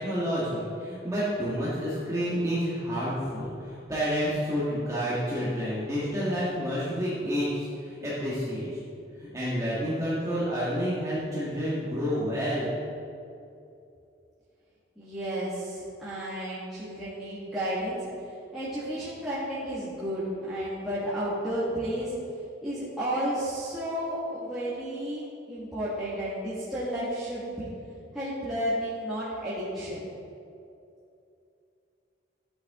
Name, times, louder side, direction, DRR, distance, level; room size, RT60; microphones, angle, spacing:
voice 1, 0.0-8.8 9.2-12.7, equal, 15° right, -9 dB, 1.7 m, -29 dB
voice 2, 15.0-18.1 18.5-22.1 22.6-27.7 28.1-30.1, equal, ahead, -12 dB, 1.7 m, -32 dB
12.0 x 8.3 x 3.7 m, 2.6 s
head